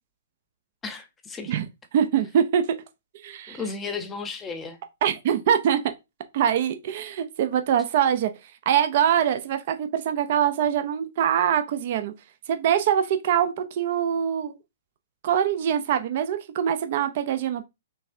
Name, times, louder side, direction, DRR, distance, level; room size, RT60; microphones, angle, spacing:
voice 1, 0.8-1.5 3.5-4.8, left 4 dB, 15° left, 0.8 m, -34 dB
voice 2, 1.9-2.6 3.2-3.6 5.0-5.8 6.3-8.3 8.7-12.1 12.5-14.6 15.2-17.7, right 9 dB, 50° right, 0.6 m, -23 dB
5.4 x 3.3 x 2.7 m
hypercardioid pair, 145°, 0 cm